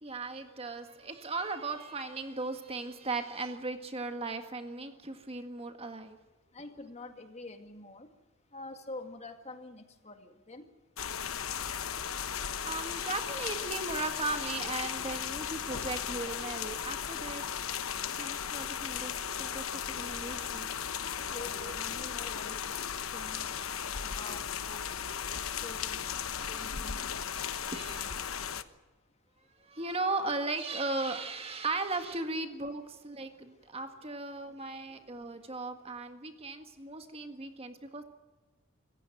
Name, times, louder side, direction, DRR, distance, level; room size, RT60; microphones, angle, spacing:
voice 1, 0.0-6.2 12.3-17.4 18.2-20.7 21.6-21.7 27.4-28.3 29.6-38.0, right 3 dB, 30° right, 6 dB, 1.7 m, -37 dB
voice 2, 6.5-8.1 8.5-10.7 21.0-22.7 23.1-23.4 24.0-25.1 25.6-26.1 26.5-27.0 34.9-35.0, left 2 dB, 30° left, 6 dB, 2.0 m, -46 dB
sound 1, 11.0-28.6, left 8 dB, 85° left, 1.0 m, -36 dB
26.0 x 15.5 x 9.1 m, 1.2 s
head